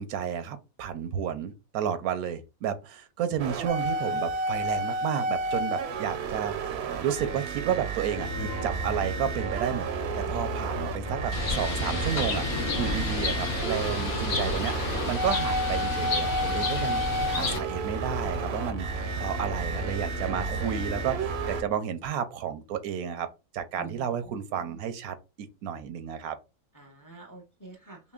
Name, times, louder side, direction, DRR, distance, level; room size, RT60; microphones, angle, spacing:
voice 1, 0.0-9.9 10.1-17.0 17.3-23.3 23.5-26.4, right 8 dB, 90° right, 1.1 m, -32 dB
sound 1, 3.4-21.6, right 3 dB, 65° right, 0.7 m, -32 dB
sound 2, 8.1-21.6, left 2 dB, 50° left, 1.1 m, -36 dB
Bird, 11.3-17.6, left 4 dB, 85° left, 1.4 m, -31 dB
voice 2, 23.8-24.8 26.7-28.0, right 4 dB, 20° left, 0.5 m, -47 dB
5.6 x 2.2 x 2.4 m
omnidirectional pair, 1.5 m